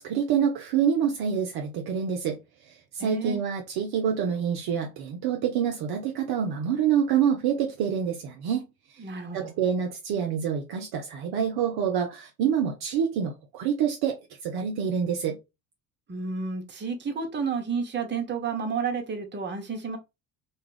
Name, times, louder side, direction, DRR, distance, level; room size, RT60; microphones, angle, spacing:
voice 1, 0.0-2.4 2.9-8.6 9.3-14.2 14.4-15.4, right 8 dB, 50° right, 0.6 m, -26 dB
voice 2, 3.0-3.4 9.0-9.5 16.1-20.0, right 5 dB, 20° right, 0.9 m, -31 dB
2.3 x 2.3 x 3.2 m
figure-of-eight pair, 50°, 50 cm